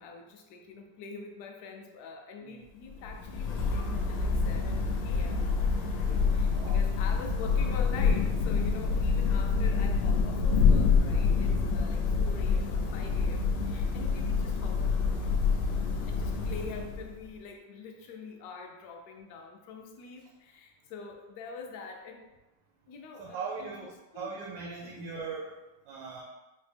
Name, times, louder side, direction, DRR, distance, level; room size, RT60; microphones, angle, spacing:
voice 1, 0.0-15.4 16.1-22.2 22.9-24.3 24.8-25.1, left 4 dB, 70° left, 2 dB, 1.0 m, -45 dB
Thunder / Rain, 2.9-17.3, left 5 dB, 90° left, 1.3 m, -27 dB
sound 1, 5.6-13.8, equal, 70° right, 0.8 m, -46 dB
voice 2, 6.0-6.8 23.2-25.5 25.9-26.2, right 5 dB, 90° right, -2 dB, 1.3 m, -40 dB
4.0 x 2.1 x 3.3 m, 1.0 s
omnidirectional pair, 2.0 m